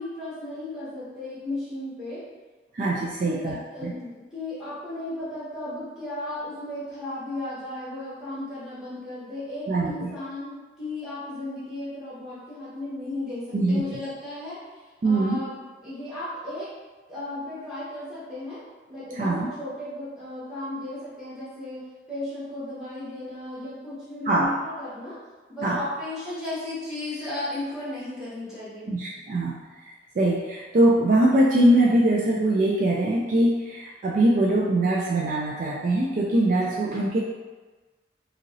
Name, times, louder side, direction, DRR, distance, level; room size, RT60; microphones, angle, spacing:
voice 1, 0.0-2.2 3.2-15.5 15.8-16.7 17.1-18.6 18.9-21.8 22.1-25.2 25.5-28.9 36.5-36.6, left 1 dB, 5° right, -12 dB, 1.1 m, -35 dB
voice 2, 2.7-3.6 3.8-3.9 9.7-10.1 13.5-13.8 15.0-15.4 19.2-19.5 24.3-24.5 25.6-25.8 28.9-29.5 30.2-37.2, right 1 dB, 45° right, -3 dB, 0.3 m, -22 dB
2.9 x 2.8 x 2.6 m, 1.3 s
head